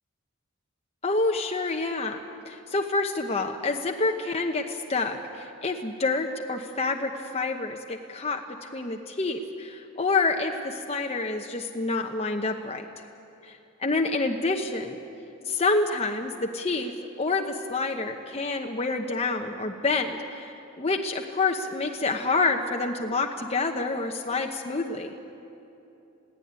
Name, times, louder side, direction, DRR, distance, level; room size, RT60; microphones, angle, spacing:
voice 1, 1.0-12.9 13.4-15.0 15.5-16.9 17.2-25.1, left 3 dB, 30° left, 3 dB, 0.9 m, -28 dB
21.0 x 16.5 x 9.6 m, 2.9 s
head